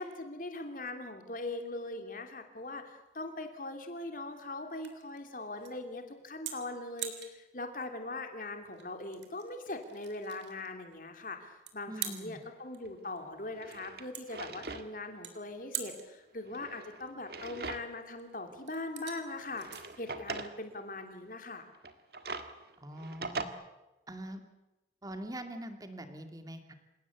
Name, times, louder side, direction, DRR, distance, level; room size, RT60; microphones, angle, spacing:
voice 1, 0.0-19.7 20.0-21.6, left 2 dB, 50° left, 6 dB, 2.9 m, -41 dB
sound 1, 2.6-21.4, right 9 dB, 80° right, 3.5 m, -47 dB
voice 2, 11.9-12.4 22.8-23.5 24.1-24.4 25.0-26.7, right 1 dB, 20° right, 7 dB, 2.3 m, -43 dB
Drawer open or close, 12.8-12.9 13.5-14.9 15.2-15.3 16.4-18.1 18.5-18.6 19.4-20.6 21.7-23.5, right 3 dB, 60° right, 1.7 m, -41 dB
27.5 x 17.0 x 8.3 m, 1.0 s
head